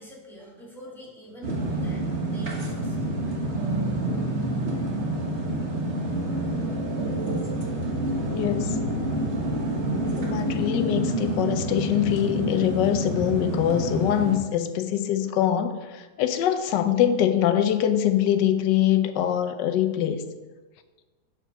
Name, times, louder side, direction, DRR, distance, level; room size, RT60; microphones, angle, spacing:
voice 1, 0.0-3.0, equal, ahead, -4 dB, 2.0 m, -45 dB
sound 1, 1.4-14.4, right 1 dB, 45° right, 1.4 m, -28 dB
voice 2, 8.3-8.8 10.1-20.2, left 10 dB, 80° left, 10 dB, 1.3 m, -23 dB
8.2 x 4.6 x 5.9 m, 1.3 s
omnidirectional pair, 1.9 m